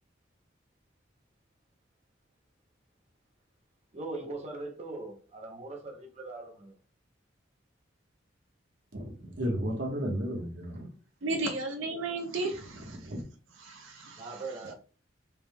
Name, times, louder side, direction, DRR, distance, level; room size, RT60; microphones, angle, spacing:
voice 1, 3.9-6.7 14.2-14.7, right 2 dB, 35° right, 0.7 m, -40 dB
voice 2, 8.9-10.9 13.0-13.2, equal, 65° right, 1.2 m, -33 dB
voice 3, 11.2-13.2 13.5-14.7, right 2 dB, 85° right, 0.6 m, -35 dB
4.4 x 3.5 x 2.2 m
head